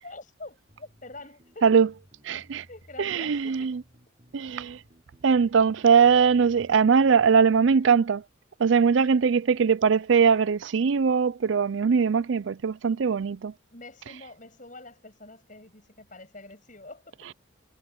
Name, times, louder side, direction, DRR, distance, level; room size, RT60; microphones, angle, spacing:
voice 1, 0.0-1.7 2.3-3.7 9.0-9.2 13.7-17.3, left 2 dB, 40° left, 7.4 m, -46 dB
sound 1, 0.7-8.1, equal, 35° right, 7.4 m, -58 dB
voice 2, 2.3-2.6 3.0-3.8 4.3-4.8 5.2-8.2 8.6-13.5, right 6 dB, 70° right, 0.4 m, -21 dB
head